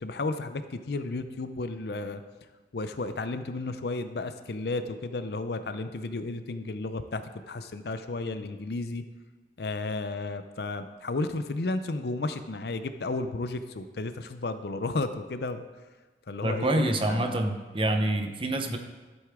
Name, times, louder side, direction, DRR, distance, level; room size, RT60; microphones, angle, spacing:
voice 1, 0.0-2.2 2.7-9.0 9.6-15.6 16.3-17.4, left 2 dB, 60° left, 10 dB, 0.6 m, -33 dB
voice 2, 16.4-18.8, right 1 dB, 30° right, 5 dB, 0.8 m, -26 dB
13.0 x 8.0 x 3.7 m, 1.3 s
head